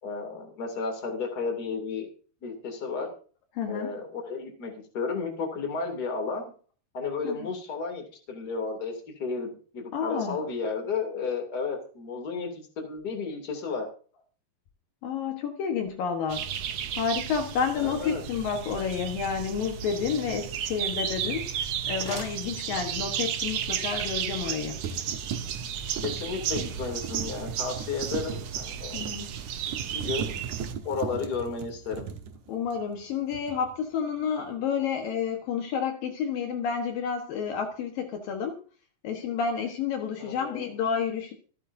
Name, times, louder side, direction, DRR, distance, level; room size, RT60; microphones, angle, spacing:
voice 1, 0.0-2.1 2.4-3.1 3.7-6.5 6.9-8.9 9.2-13.9 17.8-18.2 26.0-29.1 29.9-30.3 30.8-32.0 40.2-40.7, left 4 dB, 30° left, 3 dB, 2.9 m, -33 dB
voice 2, 3.6-3.9 7.2-7.4 9.9-10.4 15.0-16.5 17.0-24.8 28.9-29.3 32.5-38.6 39.0-41.3, left 6 dB, 70° left, 4 dB, 2.9 m, -30 dB
sound 1, 16.3-30.7, right 9 dB, 80° right, 1.4 m, -33 dB
sound 2, 20.9-21.0 24.2-24.5 24.8-33.0 33.3-33.8, right 7 dB, 65° right, 2.3 m, -38 dB
sound 3, 21.8-23.2, equal, 5° right, 4.7 m, -43 dB
25.5 x 8.6 x 2.7 m, 0.41 s
omnidirectional pair, 4.4 m